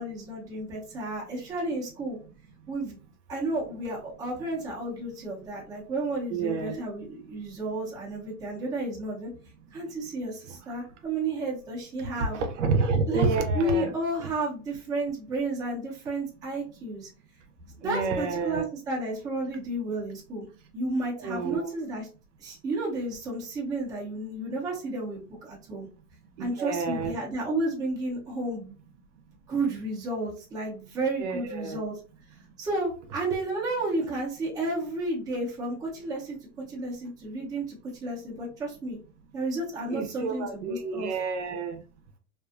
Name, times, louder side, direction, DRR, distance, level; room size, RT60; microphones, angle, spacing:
voice 1, 0.0-2.2 2.7-3.0 3.3-9.3 9.7-12.4 13.1-13.3 13.5-17.1 17.8-20.5 20.7-22.1 22.4-25.9 26.4-28.8 29.5-32.0 32.6-36.4 36.7-37.8 38.0-39.0 39.3-41.1, right 2 dB, 10° right, 0.6 m, -32 dB
voice 2, 6.3-6.8 12.2-13.9 17.8-18.7 21.2-21.7 26.4-27.1 31.2-31.8 39.9-41.8, right 4 dB, 65° right, 0.7 m, -29 dB
2.5 x 2.3 x 2.4 m
supercardioid pair, 155°, 39 cm